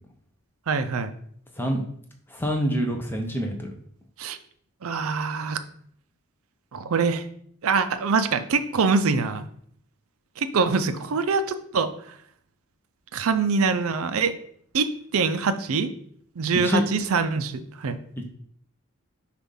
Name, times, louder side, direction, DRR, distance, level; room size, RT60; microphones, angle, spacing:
voice 1, 0.7-1.1 4.2-4.4 4.8-5.7 6.7-7.3 7.6-9.5 10.4-12.1 13.1-14.4 14.7-15.9 16.4-18.0, right 4 dB, 75° right, 11 dB, 0.5 m, -24 dB
voice 2, 2.3-3.7 16.6-16.8, equal, 10° left, 2 dB, 0.7 m, -26 dB
6.9 x 2.5 x 5.5 m, 0.65 s
head